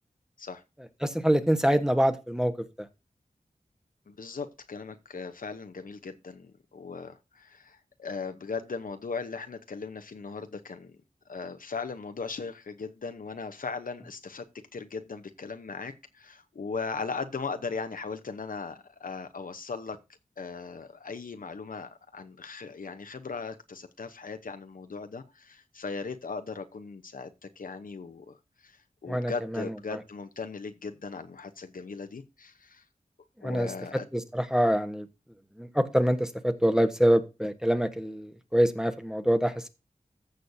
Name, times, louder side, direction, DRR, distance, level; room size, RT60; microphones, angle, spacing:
voice 1, 1.0-2.9 29.1-29.7 33.4-33.7 34.1-35.1 35.6-39.7, equal, 5° right, 9 dB, 1.1 m, -25 dB
voice 2, 4.1-11.0 11.3-14.5 14.7-20.0 20.4-28.4 28.6-32.8 33.4-34.0, left 4 dB, 70° left, 8 dB, 0.9 m, -38 dB
14.5 x 6.4 x 2.7 m, 0.26 s
wide cardioid pair, 70°, 15 cm